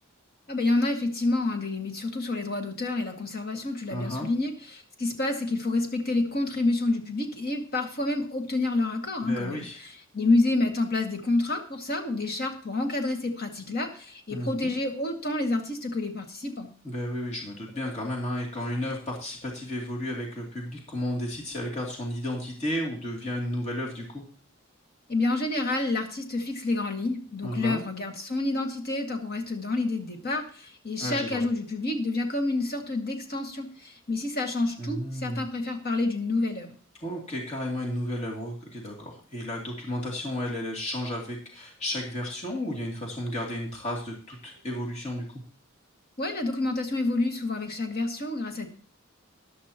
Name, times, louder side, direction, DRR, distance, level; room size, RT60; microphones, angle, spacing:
voice 1, 0.5-9.6 10.1-16.7 25.1-36.8 46.2-48.7, left 2 dB, 50° left, 3 dB, 2.0 m, -28 dB
voice 2, 3.9-4.3 9.2-9.8 14.3-14.7 16.8-24.2 27.4-27.8 31.0-31.4 34.8-35.4 37.0-45.2, left 1 dB, 35° left, -2 dB, 2.7 m, -33 dB
13.5 x 11.0 x 2.9 m, 0.42 s
head